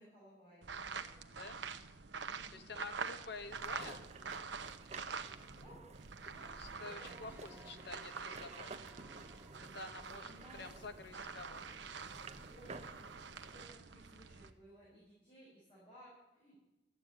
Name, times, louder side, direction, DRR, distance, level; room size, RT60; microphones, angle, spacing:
voice 1, 0.0-1.4 2.2-2.7 5.1-5.8 6.3-7.7 10.2-10.6 12.4-13.6 13.9-16.6, equal, 30° left, -8 dB, 5.7 m, -60 dB
sound 1, 0.6-5.6 5.9-14.5, right 5 dB, 75° right, 0.8 m, -47 dB
voice 2, 2.5-4.1 6.5-9.0 9.7-11.9, left 3 dB, 65° left, 8 dB, 1.2 m, -49 dB
sound 2, 3.5-13.7, right 3 dB, 40° right, 0.8 m, -53 dB
sound 3, 6.9-11.5, right 2 dB, 10° right, 1.5 m, -63 dB
13.5 x 8.4 x 8.2 m, 1.1 s
head